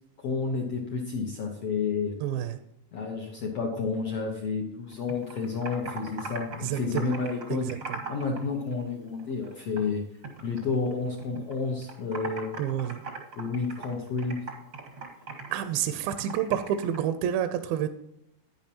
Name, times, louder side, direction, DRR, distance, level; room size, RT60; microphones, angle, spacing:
voice 1, 0.2-2.1 2.9-7.7 8.1-10.0 10.4-12.5 13.4-14.4, left 4 dB, 70° left, 0 dB, 1.5 m, -30 dB
voice 2, 2.2-2.6 6.6-7.1 7.5-8.0 12.6-13.0 15.5-17.9, right 10 dB, 80° right, 10 dB, 2.2 m, -29 dB
Computer keyboard, 4.9-8.4 8.7-9.9 10.2-11.5 11.8-17.0, right 4 dB, 55° right, 0.9 m, -40 dB
10.5 x 9.9 x 2.9 m, 0.80 s
omnidirectional pair, 4.5 m